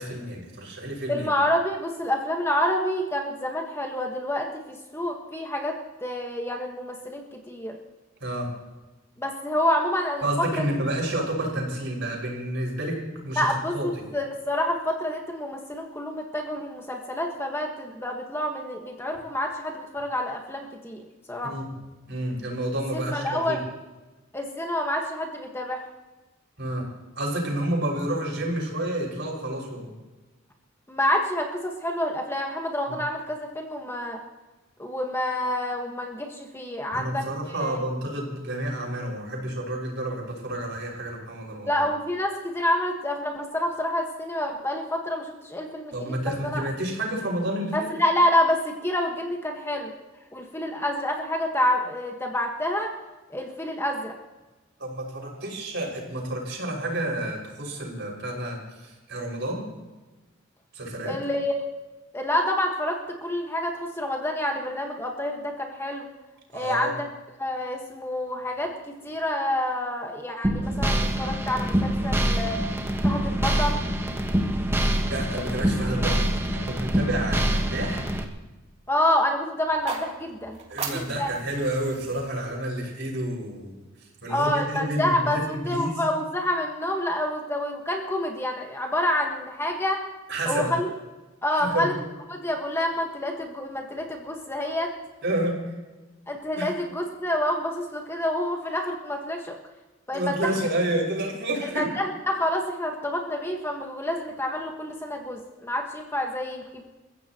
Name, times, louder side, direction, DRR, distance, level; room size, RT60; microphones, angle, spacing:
voice 1, 0.0-1.3 8.2-8.5 10.2-13.0 13.2-13.9 21.4-21.7 22.1-23.6 26.6-26.8 27.2-29.9 36.9-41.8 45.9-47.9 54.8-59.6 60.7-61.2 66.5-66.9 75.0-78.1 80.7-83.8 84.2-85.9 90.3-90.7 91.5-91.9 95.2-95.7 96.6-96.7 100.1-101.9, right 1 dB, 60° right, 0 dB, 5.9 m, -30 dB
voice 2, 1.1-7.8 9.2-10.6 13.4-21.5 22.9-23.6 24.3-25.8 30.9-34.2 34.8-37.3 37.6-37.8 41.7-46.7 47.7-49.9 50.3-52.9 53.3-54.1 61.1-61.5 62.1-66.1 66.5-67.1 67.4-72.6 73.0-73.8 78.9-80.6 80.9-81.3 84.3-90.0 90.4-90.9 91.4-91.9 92.3-94.9 96.3-99.6 100.1-100.5 101.6-106.8, left 1 dB, 10° left, 1 dB, 1.5 m, -28 dB
sound 1, 70.4-78.2, right 1 dB, 10° right, 1.4 m, -25 dB
sound 2, 79.6-83.8, right 4 dB, 35° right, 3.0 m, -38 dB
29.5 x 15.5 x 3.0 m, 1.2 s
head